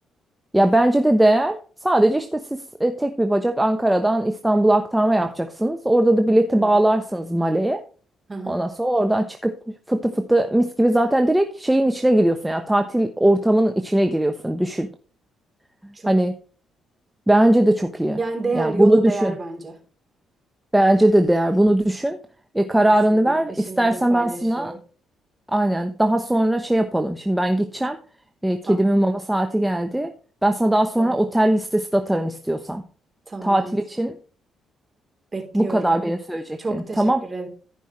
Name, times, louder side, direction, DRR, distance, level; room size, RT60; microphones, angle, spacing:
voice 1, 0.5-7.8 8.5-14.9 16.1-16.3 17.3-18.2 18.5-19.3 20.7-22.2 22.5-24.7 25.5-28.0 28.4-30.1 30.4-32.8 33.4-34.1 35.5-37.2, right 1 dB, 10° right, 6 dB, 1.0 m, -20 dB
voice 2, 8.3-8.6 15.9-16.1 18.2-19.7 23.1-24.8 28.6-28.8 31.0-31.2 33.3-34.0 35.3-35.9 36.6-37.5, right 3 dB, 30° right, 1 dB, 3.7 m, -30 dB
14.5 x 5.5 x 3.2 m, 0.40 s
supercardioid pair, 65°, 0 cm